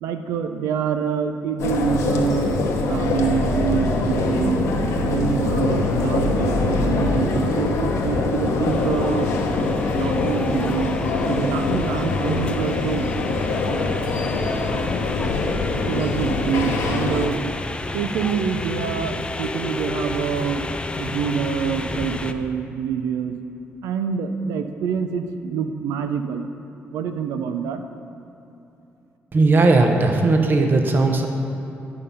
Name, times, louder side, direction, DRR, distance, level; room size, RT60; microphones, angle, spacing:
voice 1, 0.0-4.7 5.0-9.6 9.9-10.9 11.2-13.2 13.5-13.8 15.8-17.4 17.9-20.7 21.0-23.4 23.8-26.5 26.9-27.8, right 7 dB, 85° right, 8 dB, 0.5 m, -26 dB
sound 1, 1.6-17.3, left 3 dB, 80° left, 0.9 m, -23 dB
sound 2, 8.7-22.3, left 2 dB, 20° left, 0.5 m, -31 dB
voice 2, 29.3-31.3, right 3 dB, 40° right, 3 dB, 0.9 m, -17 dB
11.0 x 5.8 x 5.5 m, 2.8 s
supercardioid pair, 70°, 5 cm